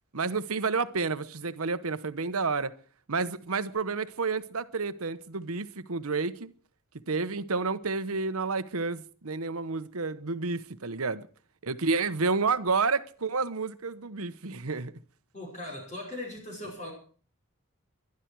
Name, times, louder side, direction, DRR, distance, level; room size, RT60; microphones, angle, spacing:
voice 1, 0.1-2.7 3.1-6.5 7.1-11.3 11.6-14.9, right 4 dB, 75° right, 1.0 m, -30 dB
voice 2, 15.3-16.9, left 1 dB, 35° left, 5.4 m, -39 dB
21.5 x 12.0 x 4.7 m
head